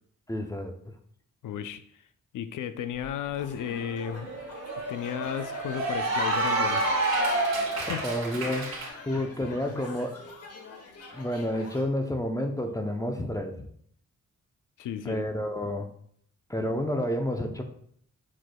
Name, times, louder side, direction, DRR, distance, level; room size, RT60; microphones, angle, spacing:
voice 1, 0.3-0.7 7.8-8.7 9.1-10.2 11.1-13.5 15.0-15.9 16.5-17.6, left 1 dB, 10° left, 0.6 m, -30 dB
voice 2, 1.4-1.8 2.3-4.3 4.9-6.9 7.7-8.0 9.7-9.8 14.8-15.2, left 9 dB, 80° left, 0.6 m, -34 dB
Cheering / Applause, 3.0-3.1 3.4-8.9, right 2 dB, 55° right, 1.9 m, -29 dB
sound 1, 3.4-11.8, left 3 dB, 50° left, 1.3 m, -46 dB
7.6 x 6.1 x 2.2 m
cardioid pair, 120°, 31 cm